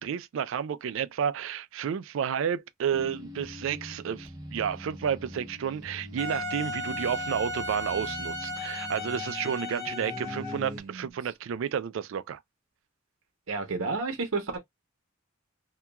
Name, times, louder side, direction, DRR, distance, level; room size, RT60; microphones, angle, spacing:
voice 1, 0.0-12.4, right 8 dB, 70° right, 0.3 m, -31 dB
sound 1, 2.9-10.8, equal, 20° right, 0.7 m, -43 dB
Wind instrument woodwind instrument, 6.2-10.7, left 1 dB, 20° left, 1.0 m, -35 dB
voice 2, 10.1-11.1 13.5-14.6, right 3 dB, 85° right, 0.8 m, -32 dB
2.8 x 2.3 x 2.2 m
head